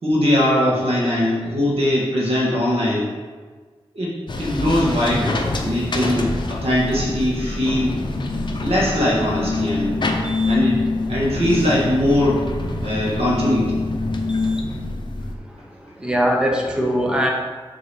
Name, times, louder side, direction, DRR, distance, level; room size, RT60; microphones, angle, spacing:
voice 1, 0.0-3.1 3.9-8.0 8.6-10.0 10.4-10.8 11.1-12.4 12.8-13.8, left 1 dB, 65° right, -6 dB, 2.1 m, -21 dB
sound 1, 4.3-15.3, left 2 dB, 45° left, 0.8 m, -25 dB
voice 2, 15.4-17.3, equal, 10° right, 0 dB, 1.0 m, -22 dB
6.7 x 3.8 x 6.3 m, 1.4 s
wide cardioid pair, 115°, 11 cm